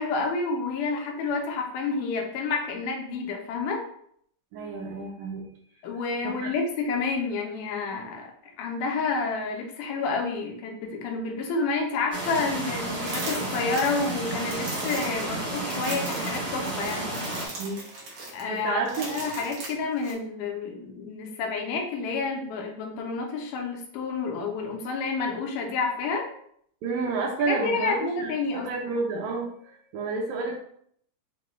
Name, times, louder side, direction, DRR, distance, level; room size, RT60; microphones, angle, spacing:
voice 1, 0.0-3.8 5.8-8.3 8.6-17.2 18.3-26.3 27.5-28.9, left 4 dB, 80° left, 2 dB, 2.1 m, -29 dB
voice 2, 4.5-5.4 6.2-6.5 17.6-19.1 26.8-30.6, right 4 dB, 85° right, -1 dB, 1.6 m, -31 dB
sound 1, 12.1-17.5, right 2 dB, 40° right, 0.9 m, -32 dB
sound 2, 13.0-20.1, right 3 dB, 60° right, 1.7 m, -38 dB
5.6 x 2.2 x 3.1 m, 0.66 s
omnidirectional pair, 3.9 m